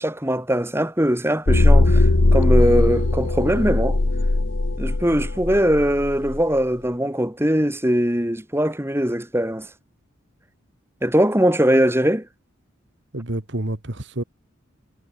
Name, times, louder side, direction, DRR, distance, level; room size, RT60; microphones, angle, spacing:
voice 1, 0.0-4.0 4.8-9.7 11.0-12.3, equal, 10° right, 2.7 m, -21 dB
sound 1, 1.5-6.4, left 2 dB, 65° left, 1.1 m, -19 dB
voice 2, 13.1-14.2, right 1 dB, 55° right, 1.8 m, -28 dB
head